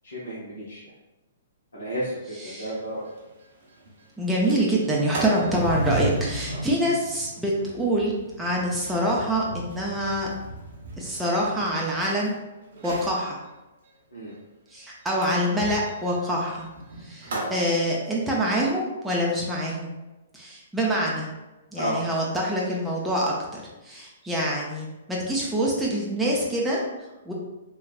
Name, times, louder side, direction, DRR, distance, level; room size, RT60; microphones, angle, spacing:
voice 1, 0.0-0.8 1.7-2.2 2.4-3.0 6.5-6.6 14.1-14.3 21.8-22.0, equal, 85° left, -10 dB, 0.9 m, -32 dB
voice 2, 2.4-2.7 4.2-10.3 11.0-12.3 12.8-13.4 14.7-16.7 17.0-19.9 20.3-21.3 21.7-26.8 27.3-27.4, equal, 5° right, -5 dB, 0.5 m, -26 dB
Sliding door, 2.7-2.8 3.2-3.3 3.6-3.9 4.3-12.3 12.7-13.2 15.2-17.6, right 2 dB, 65° right, 0.8 m, -35 dB
3.3 x 2.3 x 2.4 m, 1.1 s
hypercardioid pair, 125°, 0 cm